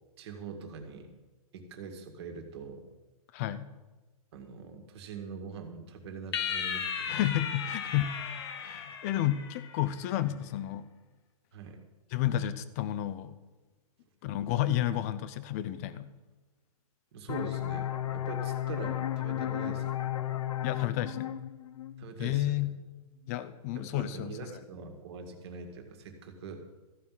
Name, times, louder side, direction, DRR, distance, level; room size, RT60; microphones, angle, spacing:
voice 1, 0.2-1.1 1.5-2.8 4.3-7.2 11.5-11.8 17.1-19.9 22.0-22.7 23.7-26.6, right 4 dB, 45° right, 4 dB, 2.0 m, -43 dB
voice 2, 3.3-3.7 7.1-8.1 8.6-10.9 12.1-13.4 14.2-16.1 20.6-21.3 22.2-22.7 23.3-24.4, left 12 dB, 25° left, 14 dB, 0.5 m, -31 dB
sound 1, 6.3-9.9, left 7 dB, 45° left, 1.3 m, -36 dB
sound 2, 17.3-22.7, left 12 dB, 60° left, 0.9 m, -34 dB
14.5 x 5.7 x 9.3 m, 1.2 s
hypercardioid pair, 160°, 19 cm